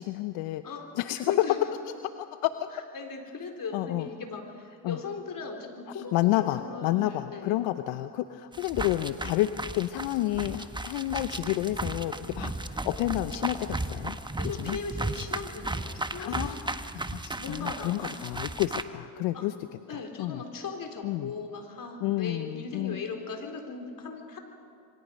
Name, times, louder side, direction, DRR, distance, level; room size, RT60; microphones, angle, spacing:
voice 1, 0.0-0.6 0.9-1.5 2.2-2.7 3.7-4.1 4.8-5.0 5.9-14.2 14.6-14.8 16.2-19.5 20.2-20.4 21.0-21.3 22.0-23.0, left 15 dB, 80° left, 10 dB, 0.8 m, -30 dB
voice 2, 1.2-1.6 2.7-7.6 14.4-16.5 17.3-18.3 19.3-19.5 19.9-24.4, left 4 dB, 50° left, 4 dB, 4.2 m, -38 dB
sound 1, 8.5-18.8, right 2 dB, 10° right, 1.2 m, -35 dB
26.5 x 24.5 x 5.4 m, 2.6 s
supercardioid pair, 70°, 44 cm